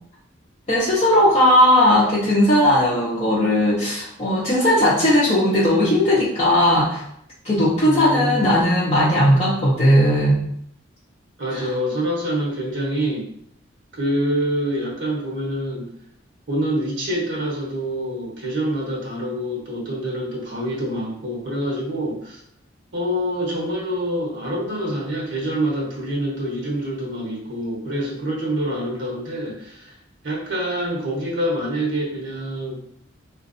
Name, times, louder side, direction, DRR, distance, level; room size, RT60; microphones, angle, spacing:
voice 1, 0.7-7.0 7.4-10.4 11.5-11.6, left 1 dB, 35° left, -8 dB, 0.7 m, -17 dB
voice 2, 7.8-8.6 11.4-13.3 13.9-15.9 16.5-22.4 22.9-30.0 30.2-32.8, equal, 65° right, -4 dB, 1.0 m, -26 dB
3.9 x 2.5 x 2.6 m, 0.70 s
head